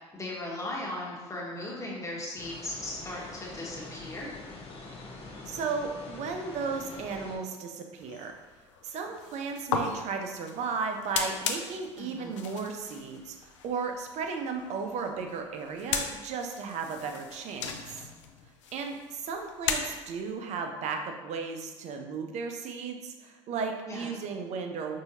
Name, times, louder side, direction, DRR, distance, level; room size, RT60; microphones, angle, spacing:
voice 1, 0.1-4.3 12.0-12.4 23.9-24.1, left 1 dB, 20° left, -3 dB, 1.2 m, -37 dB
sound 1, 2.4-7.4, left 3 dB, 40° left, 0.8 m, -44 dB
voice 2, 5.5-8.4 8.8-18.0 18.7-25.0, right 5 dB, 45° right, 4 dB, 0.6 m, -35 dB
sound 2, 8.0-20.3, left 6 dB, 75° left, 0.4 m, -38 dB
5.5 x 2.7 x 2.8 m, 1.2 s
figure-of-eight pair, 60°, 16 cm